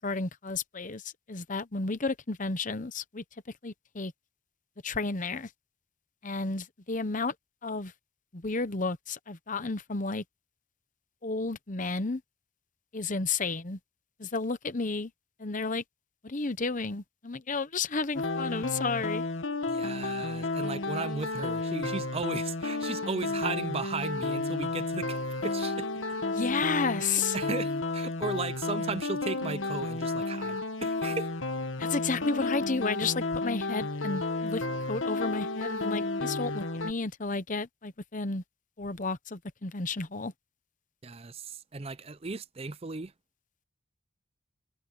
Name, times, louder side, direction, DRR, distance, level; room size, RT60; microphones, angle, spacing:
voice 1, 0.0-3.2 3.6-4.1 4.8-5.5 6.2-7.3 7.6-7.9 8.3-10.2 11.2-12.2 12.9-13.8 14.2-15.1 15.4-15.8 16.2-19.3 26.3-27.4 31.8-38.4 38.8-40.3, left 4 dB, 35° left, 0.9 m, -32 dB
sound 1, 18.2-36.9, left 2 dB, 60° left, 1.4 m, -32 dB
voice 2, 19.7-25.9 27.0-31.3 41.0-43.1, right 4 dB, 30° right, 0.5 m, -36 dB
head